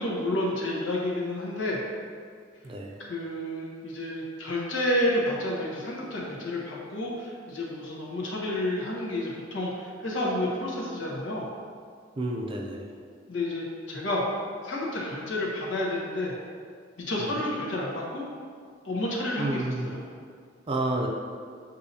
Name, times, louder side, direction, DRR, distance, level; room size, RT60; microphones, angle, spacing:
voice 1, 0.0-1.8 3.0-11.5 13.3-14.2 14.6-16.3 17.0-18.3 18.8-20.0, left 1 dB, 80° left, -3 dB, 0.9 m, -30 dB
voice 2, 2.6-3.0 12.2-12.8 17.2-17.4 19.4-19.9 20.7-21.1, right 2 dB, 30° right, 0 dB, 0.4 m, -30 dB
6.5 x 2.7 x 2.7 m, 2.1 s
head